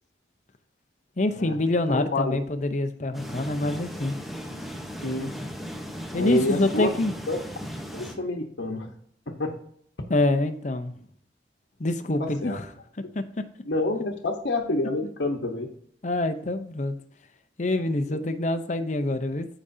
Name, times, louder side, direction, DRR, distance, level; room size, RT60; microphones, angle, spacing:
voice 1, 1.2-4.1 6.1-7.1 10.1-10.9 11.8-12.6 13.1-13.2 16.0-17.0 17.6-19.5, left 2 dB, 40° left, 9 dB, 0.7 m, -26 dB
voice 2, 1.9-2.4 5.0-5.4 6.1-6.9 7.3-7.4 7.9-8.9 9.3-9.5 12.2-12.6 13.6-15.7 18.1-18.2, left 2 dB, 75° left, 1 dB, 1.0 m, -28 dB
sound 1, 3.1-8.1, equal, ahead, 0.9 m, -37 dB
14.0 x 4.9 x 2.7 m, 0.65 s
head